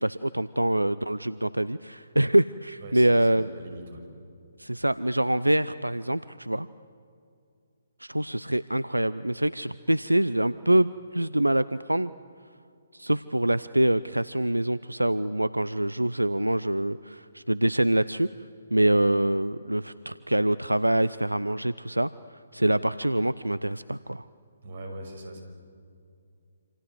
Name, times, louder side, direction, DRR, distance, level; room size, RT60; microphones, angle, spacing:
voice 1, 0.0-3.5 4.6-6.7 8.0-12.1 12.9-18.3 18.7-24.3, right 1 dB, 90° right, 17 dB, 0.6 m, -25 dB
voice 2, 2.8-4.1 24.6-25.4, right 1 dB, 50° right, 5 dB, 6.1 m, -41 dB
28.0 x 27.0 x 7.9 m, 2.4 s
figure-of-eight pair, 135°, 0 cm